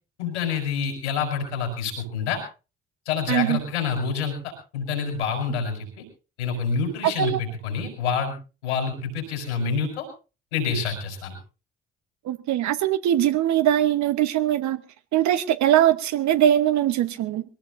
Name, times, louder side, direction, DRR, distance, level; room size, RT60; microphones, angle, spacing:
voice 1, 0.2-2.4 3.1-6.0 6.4-8.3 8.6-10.1 10.5-11.4, left 5 dB, 80° left, 3 dB, 5.3 m, -27 dB
voice 2, 3.3-3.6 7.2-7.4 12.3-14.8 15.1-17.4, right 11 dB, 55° right, 12 dB, 1.1 m, -21 dB
23.0 x 17.5 x 2.6 m, 0.33 s
figure-of-eight pair, 45°, 33 cm